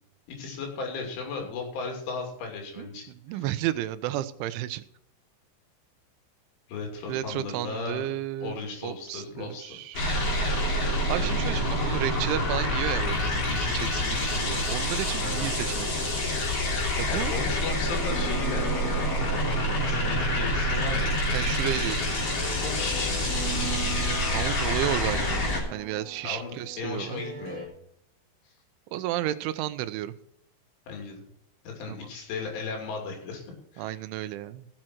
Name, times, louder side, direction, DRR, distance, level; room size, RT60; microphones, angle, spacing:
voice 1, 0.3-3.0 3.3-3.4 6.7-8.1 8.4-9.8 15.2-15.5 17.0-19.6 19.9-21.1 22.6-23.3 26.2-27.7 30.9-31.2 31.7-33.4 33.7-34.0, left 4 dB, 80° left, 1 dB, 5.3 m, -36 dB
voice 2, 2.8-4.8 7.1-8.6 8.8-10.1 11.1-15.9 17.0-17.3 21.3-22.2 24.3-27.2 28.9-30.1 31.9-32.1 33.8-34.7, right 13 dB, 85° right, 13 dB, 3.1 m, -32 dB
sound 1, 9.9-25.6, left 1 dB, 40° left, 3.3 m, -27 dB
sound 2, 18.1-27.7, right 3 dB, 30° right, 3.2 m, -40 dB
16.0 x 7.7 x 4.4 m, 0.72 s
omnidirectional pair, 5.4 m